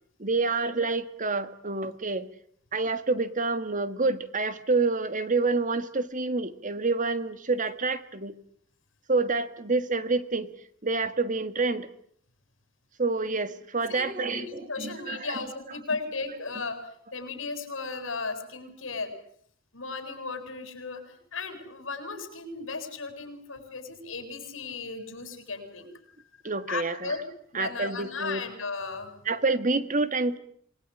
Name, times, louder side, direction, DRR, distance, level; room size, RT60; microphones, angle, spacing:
voice 1, 0.2-2.3 2.7-8.4 9.1-10.5 10.8-11.9 13.0-15.4 26.4-27.1 27.5-28.4 29.3-30.4, right 3 dB, 40° right, 12 dB, 1.7 m, -28 dB
voice 2, 13.9-19.1 19.7-25.9 26.4-27.2 27.5-29.1, left 4 dB, 70° left, 7 dB, 8.0 m, -36 dB
27.5 x 21.0 x 10.0 m, 0.65 s
head